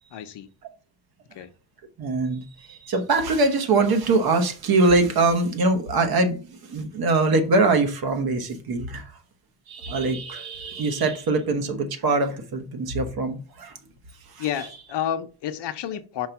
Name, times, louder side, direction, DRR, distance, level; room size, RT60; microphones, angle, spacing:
voice 1, 0.1-0.5 1.3-1.5 14.4-16.3, left 10 dB, 75° left, 0.8 m, -30 dB
voice 2, 2.0-9.2 9.7-13.8 14.3-14.4, right 3 dB, 60° right, 1.2 m, -23 dB
5.3 x 3.9 x 5.8 m
wide cardioid pair, 175°, 42 cm